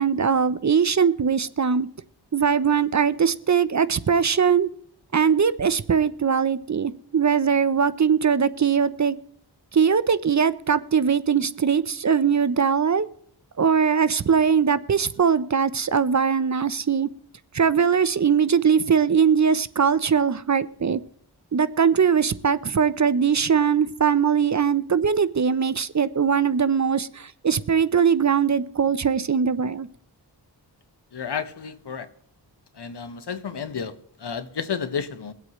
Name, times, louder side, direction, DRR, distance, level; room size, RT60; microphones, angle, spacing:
voice 1, 0.0-1.9 2.3-4.7 5.1-9.2 9.7-13.1 13.6-17.1 17.5-21.0 21.5-29.9, right 6 dB, 40° right, 0.6 m, -21 dB
voice 2, 31.1-32.1 32.8-35.3, left 6 dB, 70° left, 1.2 m, -31 dB
22.5 x 8.2 x 3.1 m
cardioid pair, 60°, 43 cm